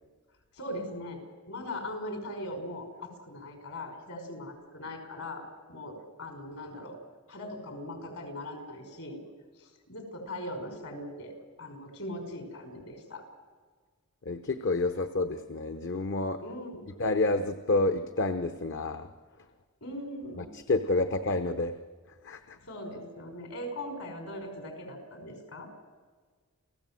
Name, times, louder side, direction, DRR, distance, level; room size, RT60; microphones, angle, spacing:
voice 1, 0.5-7.0 7.3-9.2 9.6-13.3 16.4-16.9 19.8-20.5 22.6-25.7, left 1 dB, 75° left, 5 dB, 5.7 m, -40 dB
voice 2, 14.3-16.4 17.0-19.1 20.7-21.7 22.2-22.4, left 2 dB, 55° left, 9 dB, 1.0 m, -28 dB
29.0 x 16.5 x 7.7 m, 1.5 s
head